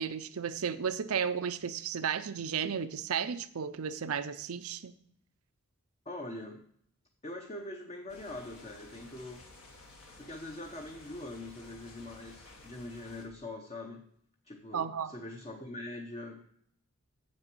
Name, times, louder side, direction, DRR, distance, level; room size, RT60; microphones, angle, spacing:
voice 1, 0.0-4.9 14.7-15.1, right 7 dB, 75° right, 13 dB, 0.5 m, -34 dB
voice 2, 6.1-6.6 7.2-9.4 10.2-14.1 14.4-16.4, left 2 dB, 30° left, 2 dB, 0.8 m, -43 dB
sound 1, 8.1-13.2, left 2 dB, 70° left, 2.0 m, -54 dB
7.4 x 6.4 x 6.0 m, 0.66 s
head